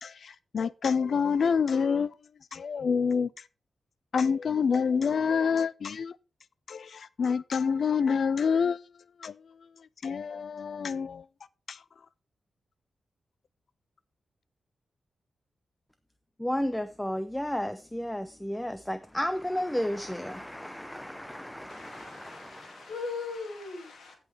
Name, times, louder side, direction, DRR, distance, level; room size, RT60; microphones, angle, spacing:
voice 1, 0.0-2.1 2.5-3.3 4.1-6.2 6.7-8.8 9.2-9.4 10.0-11.2 11.7-11.8, left 6 dB, 60° left, 0.4 m, -27 dB
voice 2, 16.4-22.9, equal, 5° left, 0.5 m, -33 dB
voice 3, 21.7-24.1, left 4 dB, 80° left, 2.5 m, -39 dB
16.5 x 5.5 x 3.3 m
wide cardioid pair, 140°, 0 cm